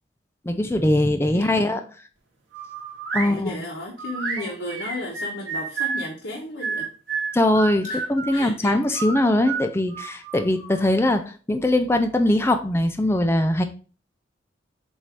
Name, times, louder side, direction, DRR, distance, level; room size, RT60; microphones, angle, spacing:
voice 1, 0.5-1.8 3.1-3.6 7.3-11.2 11.5-13.6, left 1 dB, 15° left, 6 dB, 0.5 m, -21 dB
voice 2, 1.3-1.8 3.2-6.9 7.8-8.0 8.3-9.0, left 1 dB, 75° left, -2 dB, 1.2 m, -34 dB
sound 1, 2.5-3.3 4.0-6.1 6.6-8.4 8.9-10.8, right 4 dB, 80° right, 1.7 m, -30 dB
7.4 x 2.7 x 4.7 m, 0.37 s
head